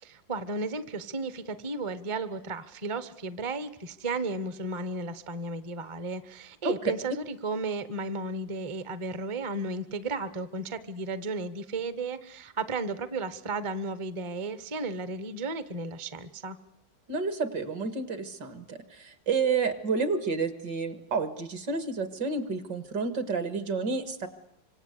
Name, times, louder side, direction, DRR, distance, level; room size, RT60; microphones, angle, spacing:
voice 1, 0.0-16.6, right 3 dB, 25° right, 13 dB, 0.6 m, -34 dB
voice 2, 17.1-24.3, right 4 dB, 65° right, 10 dB, 2.3 m, -30 dB
26.0 x 25.5 x 8.2 m, 0.78 s
omnidirectional pair, 2.1 m